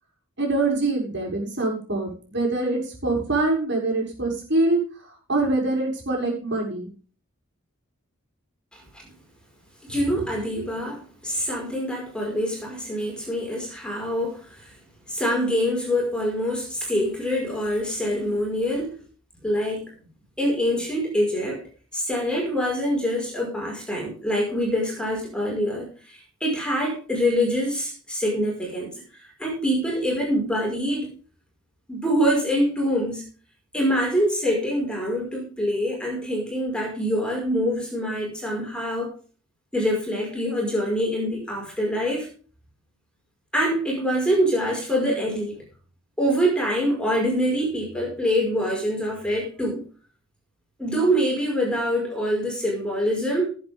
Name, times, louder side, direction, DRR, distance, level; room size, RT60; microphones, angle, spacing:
voice 1, 0.4-6.9 10.6-10.7 12.3-12.4, right 2 dB, 50° right, -1 dB, 6.7 m, -24 dB
voice 2, 9.9-14.7 15.1-19.0 19.4-19.9 20.4-21.6 21.9-31.1 31.9-33.2 33.7-39.1 39.7-42.3 43.5-45.6 46.2-49.8 50.8-53.5, equal, 5° left, -1 dB, 5.3 m, -25 dB
19.5 x 8.3 x 3.7 m, 0.39 s
head